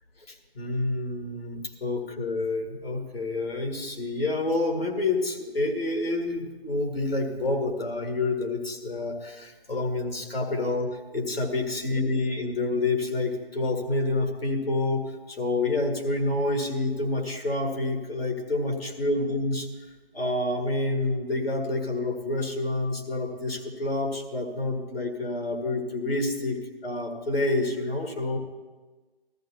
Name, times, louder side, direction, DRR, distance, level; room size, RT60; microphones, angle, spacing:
voice 1, 0.3-19.7 20.1-28.4, left 2 dB, 75° left, 2 dB, 2.1 m, -28 dB
14.0 x 14.0 x 2.9 m, 1.3 s
figure-of-eight pair, 150°, 30 cm